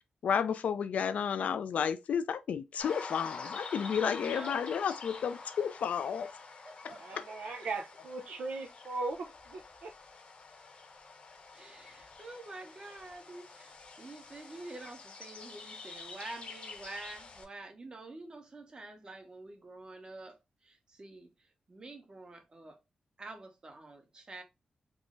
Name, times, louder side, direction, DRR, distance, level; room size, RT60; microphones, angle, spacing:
voice 1, 0.2-6.3 6.8-7.2, left 7 dB, 80° left, 0.4 m, -32 dB
sound 1, 2.8-17.4, left 4 dB, 55° left, 0.9 m, -47 dB
voice 2, 4.1-4.5 6.6-7.3 11.5-22.8 23.2-24.4, right 2 dB, 35° right, 1.0 m, -48 dB
voice 3, 7.0-10.0, right 3 dB, 85° right, 0.7 m, -39 dB
3.6 x 2.0 x 3.7 m
cardioid pair, 75°, 2 cm